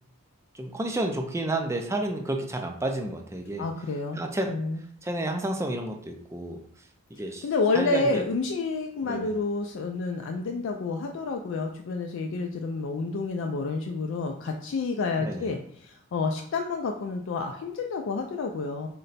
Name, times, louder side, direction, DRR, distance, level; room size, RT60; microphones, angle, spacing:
voice 1, 0.5-3.7 4.1-4.6 5.0-6.6 7.1-7.5 7.7-8.2 9.1-9.3 15.2-15.5, right 1 dB, 15° right, 4 dB, 0.4 m, -30 dB
voice 2, 3.6-4.2 4.5-4.8 7.4-18.9, left 3 dB, 65° left, 3 dB, 0.3 m, -29 dB
3.8 x 2.2 x 4.0 m, 0.63 s
head